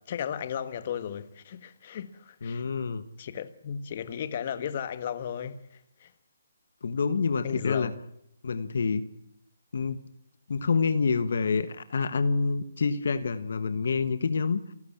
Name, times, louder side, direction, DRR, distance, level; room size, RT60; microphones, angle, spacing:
voice 1, 0.0-2.6 3.2-5.6 6.0-6.1 7.4-7.9, left 8 dB, 40° left, 1.5 m, -35 dB
voice 2, 2.4-3.0 6.8-7.9 8.4-9.1 9.7-10.0 10.5-14.6, left 5 dB, 65° left, 1.3 m, -27 dB
28.5 x 11.5 x 8.7 m
hypercardioid pair, 155°, 0 cm